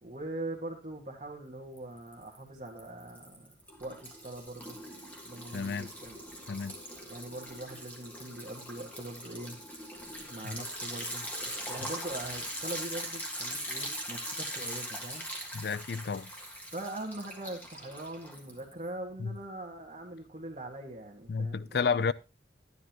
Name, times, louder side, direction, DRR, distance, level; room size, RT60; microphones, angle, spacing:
voice 1, 0.0-4.8 5.2-6.2 7.1-9.6 10.2-15.3 16.7-22.1, right 1 dB, 40° right, 1.6 m, -42 dB
Liquid, 1.8-2.4 2.7-18.9, equal, 10° left, 1.6 m, -41 dB
voice 2, 5.5-5.9 6.5-6.8 10.4-10.6 15.5-16.3 19.2-19.4 21.3-22.1, left 5 dB, 60° left, 0.4 m, -31 dB
12.5 x 9.8 x 2.9 m
head